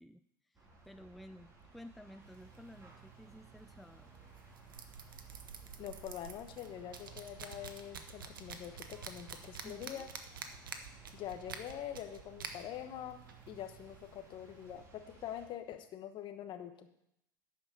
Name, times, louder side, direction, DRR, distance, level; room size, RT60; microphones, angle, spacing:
voice 1, 0.0-4.1 9.6-10.1, equal, ahead, 10 dB, 0.4 m, -54 dB
sound 1, 0.5-15.5, right 3 dB, 25° right, 3.8 m, -59 dB
sound 2, 2.2-14.8, right 6 dB, 85° right, 0.9 m, -50 dB
voice 2, 5.8-10.1 11.1-16.9, left 10 dB, 45° left, 8 dB, 1.2 m, -45 dB
11.0 x 5.1 x 6.9 m, 0.80 s
hypercardioid pair, 85°, 11 cm